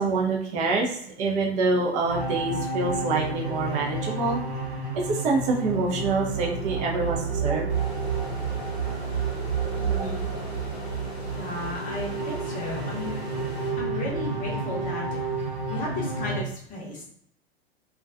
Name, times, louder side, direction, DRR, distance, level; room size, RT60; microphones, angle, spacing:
voice 1, 0.0-4.4 4.9-7.7, right 3 dB, 25° right, 0 dB, 0.5 m, -26 dB
sound 1, 2.1-16.4, right 4 dB, 60° right, 0.9 m, -30 dB
sound 2, 7.7-14.4, left 2 dB, 80° left, 0.7 m, -41 dB
voice 2, 9.7-10.3 11.3-13.2 13.8-15.1 15.7-17.0, left 2 dB, 25° left, -2 dB, 0.8 m, -34 dB
2.3 x 2.3 x 2.4 m, 0.66 s
figure-of-eight pair, 95°, 32 cm